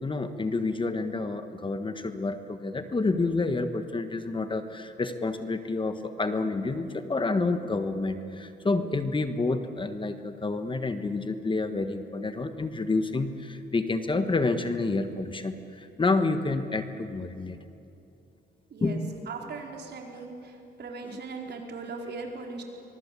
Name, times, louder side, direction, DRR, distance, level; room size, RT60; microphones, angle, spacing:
voice 1, 0.0-17.6 18.8-19.1 21.0-21.2, left 3 dB, 25° left, 8 dB, 1.5 m, -29 dB
voice 2, 19.3-20.4 20.8-22.6, right 4 dB, 55° right, 1 dB, 4.5 m, -38 dB
24.0 x 23.0 x 8.5 m, 2.7 s
cardioid pair, 90°, 20 cm